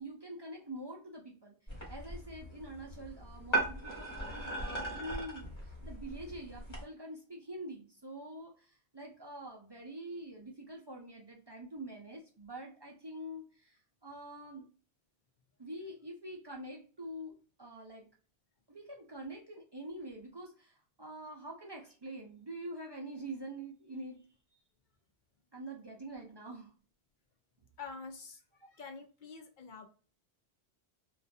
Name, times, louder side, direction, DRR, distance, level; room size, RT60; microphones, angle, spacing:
voice 1, 0.0-1.5 1.9-5.5 5.8-8.7 8.9-13.8 14.0-14.7 15.6-17.3 17.6-18.1 18.7-20.7 21.0-24.2 25.5-26.7, right 1 dB, 35° right, -1 dB, 0.5 m, -45 dB
sound 1, 1.7-6.8, right 1 dB, 25° left, 1.0 m, -38 dB
voice 2, 27.8-28.4 28.7-29.9, left 5 dB, 60° left, 4 dB, 0.6 m, -46 dB
2.5 x 2.3 x 2.2 m, 0.38 s
omnidirectional pair, 1.1 m